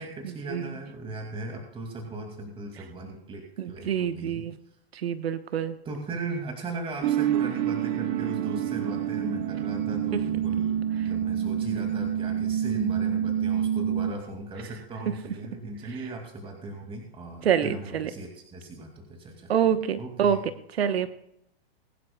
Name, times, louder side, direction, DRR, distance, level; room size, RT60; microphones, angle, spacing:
voice 1, 0.0-4.4 5.8-19.5 20.0-20.4, right 2 dB, 15° right, 2 dB, 2.4 m, -38 dB
voice 2, 3.6-4.5 5.0-5.7 17.4-18.1 19.5-20.4 20.8-21.1, right 8 dB, 80° right, 11 dB, 1.1 m, -26 dB
sound 1, 7.0-14.1, right 10 dB, 40° right, 0.9 m, -27 dB
21.5 x 11.0 x 2.3 m, 0.76 s
hypercardioid pair, 125°, 31 cm